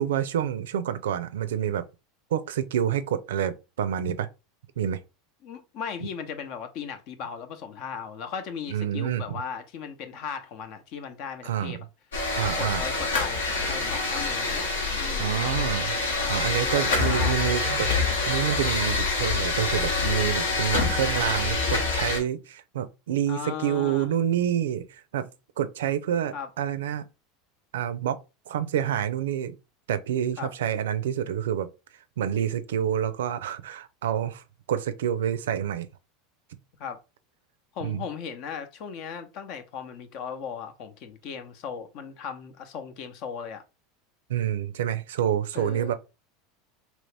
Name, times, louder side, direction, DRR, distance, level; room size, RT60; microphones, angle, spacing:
voice 1, 0.0-1.8 2.3-4.3 4.8-5.0 8.7-9.2 11.4-11.8 12.4-12.8 15.2-15.9 16.3-25.3 25.6-27.1 27.7-28.2 28.5-29.6 29.9-31.7 32.2-34.4 34.7-35.9 37.8-38.0 44.3-45.9, right 10 dB, 80° right, 0.4 m, -28 dB
voice 2, 5.4-11.8 12.4-14.7 14.9-15.7 16.2-17.4 23.3-24.1 26.3-26.5 30.4-30.5 36.8-37.0 37.7-43.6 45.5-45.9, left 6 dB, 55° left, 0.7 m, -37 dB
sound 1, 12.1-22.2, left 3 dB, 90° left, 1.0 m, -26 dB
2.9 x 2.7 x 3.3 m
hypercardioid pair, 95°, 0 cm